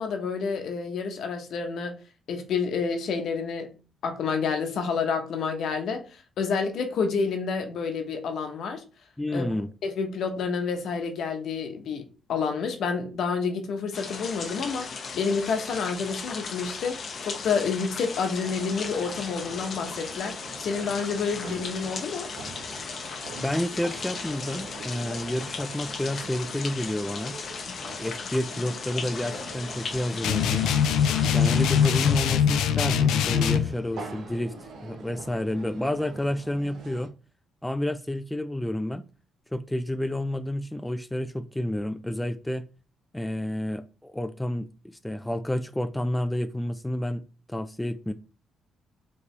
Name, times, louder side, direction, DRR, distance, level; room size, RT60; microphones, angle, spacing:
voice 1, 0.0-1.9 2.3-3.7 4.0-8.8 9.3-9.5 9.8-14.9 15.1-20.3 20.6-22.3, left 5 dB, 70° left, 1.0 m, -29 dB
voice 2, 9.2-9.7 23.4-27.4 28.0-30.7 31.3-37.1 37.6-39.0 39.5-42.6 43.1-47.2 47.5-48.1, left 1 dB, 5° left, 0.3 m, -30 dB
sound 1, 13.9-32.2, left 5 dB, 50° left, 0.7 m, -37 dB
sound 2, 18.3-37.1, right 4 dB, 75° right, 1.1 m, -44 dB
sound 3, 30.2-33.7, left 8 dB, 85° left, 0.4 m, -22 dB
4.6 x 3.3 x 3.3 m
cardioid pair, 90°, 0 cm